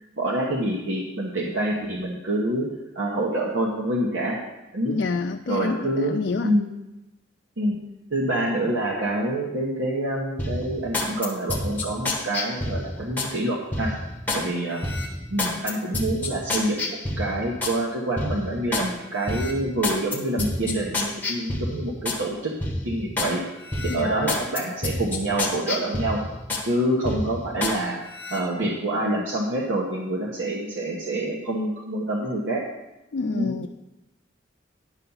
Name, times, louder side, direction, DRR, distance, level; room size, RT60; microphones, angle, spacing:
voice 1, 0.2-2.7 2.9-4.4 4.7-5.0 5.5-6.1 6.4-6.7 7.6-7.8 8.1-14.0 14.3-14.8 15.3-22.5 22.8-23.4 23.8-26.2 26.6-28.0 28.3-32.6 33.3-33.5, right 1 dB, 90° right, -3 dB, 1.2 m, -26 dB
voice 2, 4.8-6.5 23.9-24.3 33.1-33.7, left 4 dB, 70° left, 4 dB, 0.4 m, -28 dB
sound 1, 10.4-13.3 13.7-14.5 14.8-17.8 18.2-18.9 19.2-22.2 22.6-23.3 23.7-26.7 27.0-27.8 28.1-28.4, left 2 dB, 10° left, 1.1 m, -29 dB
10.5 x 5.8 x 5.5 m, 1.0 s
head